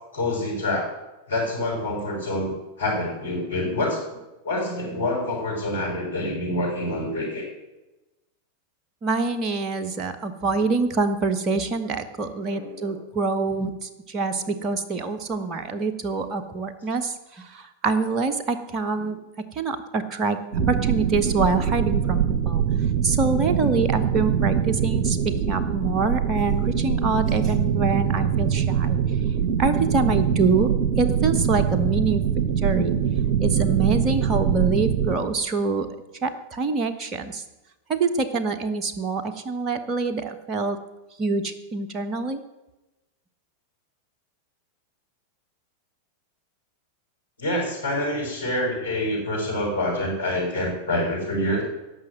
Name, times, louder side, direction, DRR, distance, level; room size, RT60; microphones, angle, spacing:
voice 1, 0.1-0.9 1.3-4.2 4.4-7.5 12.5-12.9 19.0-19.1 47.4-51.6, left 1 dB, 75° left, -2 dB, 6.0 m, -27 dB
voice 2, 9.0-19.2 19.5-20.4 20.7-22.6 23.0-29.0 29.6-32.2 32.6-33.0 33.4-35.9 36.2-37.4 37.9-40.8 41.2-42.4, right 4 dB, 30° right, 7 dB, 1.3 m, -25 dB
sound 1, 20.5-35.2, right 8 dB, 45° right, 1.7 m, -23 dB
17.5 x 6.2 x 7.7 m, 1.0 s
figure-of-eight pair, 90°, 0 cm